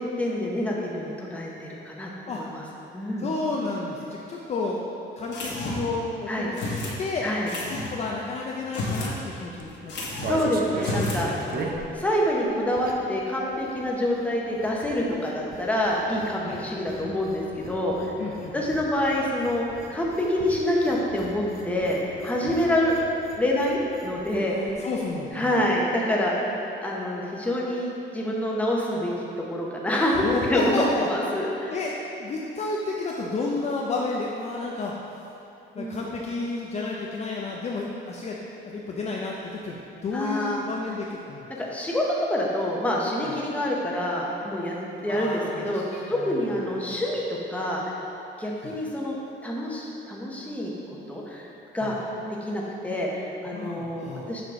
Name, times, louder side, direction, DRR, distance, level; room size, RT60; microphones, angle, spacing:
voice 1, 0.0-2.6 2.9-3.3 6.3-6.5 7.2-7.5 10.3-11.3 11.9-18.1 18.5-19.6 19.9-23.0 23.4-24.6 25.3-29.1 29.5-30.2 30.5-31.7 35.8-36.1 40.1-40.6 41.6-44.8 45.0-45.8 46.1-47.8 48.4-49.1 49.4-50.7 51.1-51.4 51.7-51.9 52.4-54.4, left 1 dB, 5° left, -3 dB, 0.8 m, -26 dB
voice 2, 3.2-4.8 5.2-7.3 7.7-9.9 11.1-11.9 16.4-16.6 18.2-18.7 22.4-22.6 24.4-25.6 30.2-31.1 31.7-31.9 32.2-34.9 35.7-38.4 38.6-41.5 43.3-43.4 45.1-47.0 48.6-48.7 51.8-52.0 53.5-54.3, left 3 dB, 35° left, -2 dB, 0.4 m, -31 dB
sound 1, 5.3-6.0 6.6-7.0 7.5-7.9 8.6-9.2 9.4-9.5 9.9-10.4 10.8-11.2, left 2 dB, 65° left, 1.2 m, -31 dB
sound 2, 9.5-13.2 13.5-24.4 24.7-24.8 25.0-25.3, right 3 dB, 50° right, 0.6 m, -39 dB
6.9 x 4.8 x 3.6 m, 2.8 s
cardioid pair, 150°, 20 cm